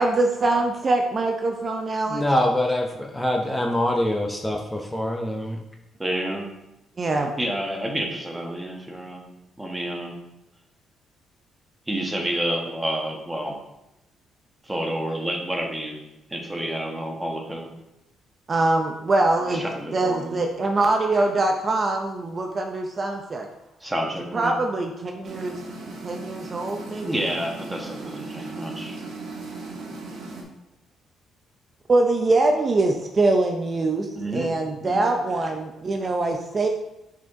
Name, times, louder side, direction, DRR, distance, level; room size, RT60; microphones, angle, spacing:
voice 1, 0.0-2.2 7.0-7.3 18.5-19.6 19.9-23.5 24.3-25.6 26.0-27.2 31.9-36.7, right 2 dB, 35° right, 3 dB, 0.6 m, -23 dB
voice 2, 2.1-5.6, left 1 dB, 10° left, 2 dB, 0.7 m, -24 dB
voice 3, 6.0-6.5 7.4-9.2 9.6-10.2 11.9-13.5 14.6-16.0 16.3-17.7 19.5-20.4 23.8-24.5 27.0-29.0 34.2-34.5 34.8-35.0, right 1 dB, 10° right, 1 dB, 1.4 m, -29 dB
sound 1, 25.2-30.4, right 3 dB, 75° right, 1.3 m, -37 dB
6.1 x 4.3 x 3.7 m, 0.90 s
cardioid pair, 90°, 0 cm